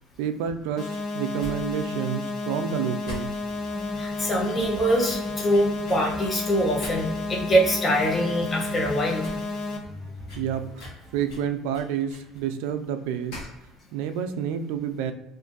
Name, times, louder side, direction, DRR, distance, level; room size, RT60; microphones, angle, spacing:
voice 1, 0.2-3.4 10.4-10.7 11.1-13.4 13.9-15.1, right 8 dB, 85° right, 8 dB, 0.3 m, -29 dB
sound 1, 0.8-9.8, left 2 dB, 80° left, 0.5 m, -32 dB
sound 2, 1.4-1.5 1.8-2.0 2.3-2.4 3.0-3.6 4.0-4.1 4.6-6.0 6.8-7.2 7.6-7.7 8.0-8.3 8.6-8.7 9.1-9.4 9.6-9.7 10.3-12.4 13.3-13.6 13.9-14.0, left 1 dB, 55° left, 1.2 m, -41 dB
sound 3, 3.4-11.2, left 1 dB, ahead, 0.9 m, -42 dB
voice 2, 4.0-9.3, equal, 15° left, -2 dB, 0.5 m, -24 dB
2.5 x 2.4 x 3.8 m, 0.92 s
cardioid pair, 175°, 0 cm